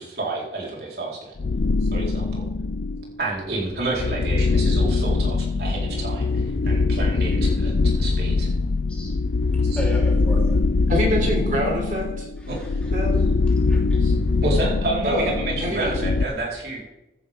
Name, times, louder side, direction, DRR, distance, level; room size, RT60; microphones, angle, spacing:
voice 1, 0.0-1.3 1.9-2.5 3.2-8.5 9.6-9.8 12.5-12.6 14.4-16.8, right 2 dB, 60° right, -4 dB, 4.1 m, -29 dB
sound 1, 1.4-3.1 3.7-16.3, left 3 dB, 70° left, 0.5 m, -22 dB
voice 2, 9.8-10.6 12.4-13.2 13.7-14.0, equal, 5° left, -5 dB, 3.5 m, -36 dB
voice 3, 10.9-12.3 12.9-13.3 14.0-14.1 15.0-15.3 15.6-15.9, equal, 45° right, 0 dB, 3.5 m, -25 dB
15.0 x 11.0 x 3.6 m, 0.94 s
head